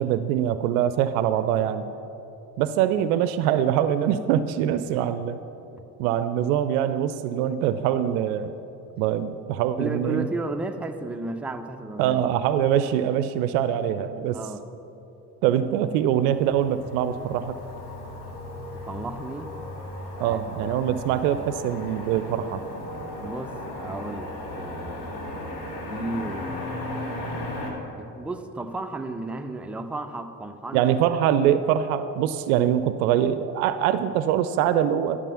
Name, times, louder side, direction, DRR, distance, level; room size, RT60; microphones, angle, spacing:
voice 1, 0.0-1.9 2.6-5.4 6.0-8.5 9.0-10.3 12.0-14.4 15.4-17.6 20.2-22.6 30.7-35.2, right 10 dB, 65° right, 12 dB, 0.5 m, -23 dB
voice 2, 4.8-5.2 9.8-12.2 14.3-14.6 18.7-19.5 20.1-20.9 23.2-25.1 25.9-26.8 28.0-30.8, right 2 dB, 5° right, 6 dB, 0.5 m, -34 dB
Motor vehicle (road), 15.8-27.7, left 1 dB, 50° left, 1.9 m, -36 dB
12.0 x 6.5 x 5.8 m, 3.0 s
figure-of-eight pair, 55°, 49 cm